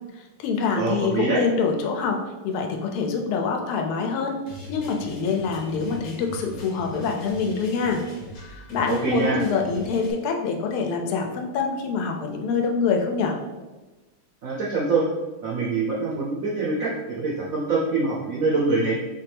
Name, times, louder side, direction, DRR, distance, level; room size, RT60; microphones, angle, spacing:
voice 1, 0.1-4.4 4.7-8.0 8.7-13.4, left 5 dB, 85° left, 3 dB, 1.5 m, -25 dB
voice 2, 0.8-1.4 8.9-9.4 14.4-15.1 15.4-19.0, right 3 dB, 85° right, -4 dB, 0.7 m, -24 dB
sound 1, 4.5-10.1, left 1 dB, 55° left, 0.9 m, -40 dB
4.4 x 3.3 x 3.4 m, 1.2 s
omnidirectional pair, 2.4 m